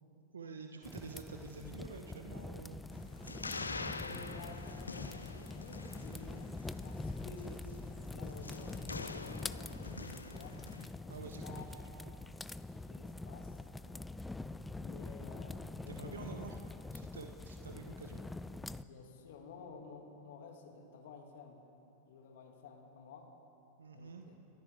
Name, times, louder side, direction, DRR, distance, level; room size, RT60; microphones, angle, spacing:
voice 1, 0.3-2.8 10.8-11.6 12.1-12.2 15.9-16.6 16.9-18.2 23.8-24.2, right 4 dB, 80° right, 4 dB, 0.9 m, -48 dB
sound 1, 0.8-18.8, left 2 dB, 10° left, 0.4 m, -45 dB
sound 2, 2.9-10.9, left 4 dB, 90° left, 0.5 m, -46 dB
voice 2, 4.0-6.5 6.8-7.7 8.1-10.6 11.0-11.9 12.7-14.1 14.8-16.4 18.9-21.6 22.0-23.4 23.9-24.4, left 4 dB, 65° left, 2 dB, 2.1 m, -53 dB
28.0 x 14.0 x 3.5 m, 2.9 s
hypercardioid pair, 95°, 0 cm